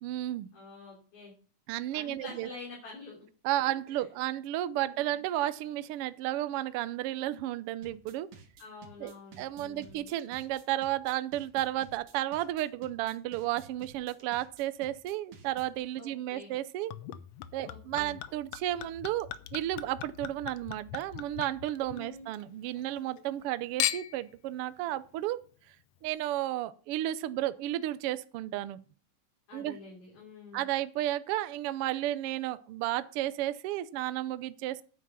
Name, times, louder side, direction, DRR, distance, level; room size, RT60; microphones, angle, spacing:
voice 1, 0.0-0.5 1.7-2.5 3.4-8.3 9.0-16.9 17.5-25.4 26.0-28.8 29.5-29.8 30.5-34.8, right 14 dB, 85° right, 15 dB, 1.2 m, -33 dB
voice 2, 0.5-1.3 1.9-3.2 3.9-4.0 4.8-5.2 8.6-10.1 16.0-16.6 17.6-18.2 21.9-22.3 29.5-30.7, left 3 dB, 50° left, -3 dB, 4.4 m, -48 dB
sound 1, 7.8-15.8, right 6 dB, 55° right, 2.6 m, -53 dB
Chink clink / Liquid, 16.9-22.4 22.8-23.4 23.8-24.3 25.0-25.1, left 12 dB, 75° left, 1.7 m, -38 dB
9.8 x 8.3 x 5.6 m, 0.40 s
omnidirectional pair, 3.4 m